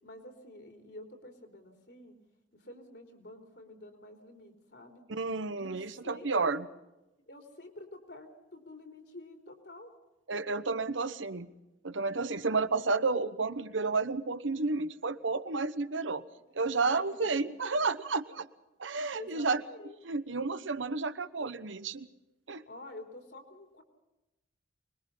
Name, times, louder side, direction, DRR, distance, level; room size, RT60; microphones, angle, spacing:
voice 1, 0.0-2.2 2.5-5.0 5.6-6.5 7.3-9.9 16.9-17.4 19.2-20.0 22.7-23.8, left 1 dB, 60° left, 5 dB, 3.6 m, -48 dB
voice 2, 5.1-6.6 10.3-11.5 11.8-16.2 16.5-18.5 18.8-19.6 20.0-22.1 22.5-22.6, right 3 dB, 90° right, 13 dB, 1.1 m, -31 dB
25.0 x 21.0 x 5.6 m, 0.99 s
head